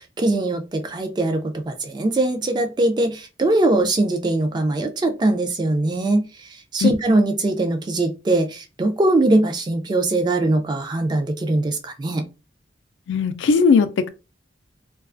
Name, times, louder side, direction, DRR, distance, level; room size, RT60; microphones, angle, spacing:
voice 1, 0.2-6.2 6.7-12.2, right 2 dB, 25° right, 0.3 m, -21 dB
voice 2, 13.1-14.1, left 5 dB, 80° left, 0.3 m, -17 dB
2.3 x 2.2 x 2.4 m
head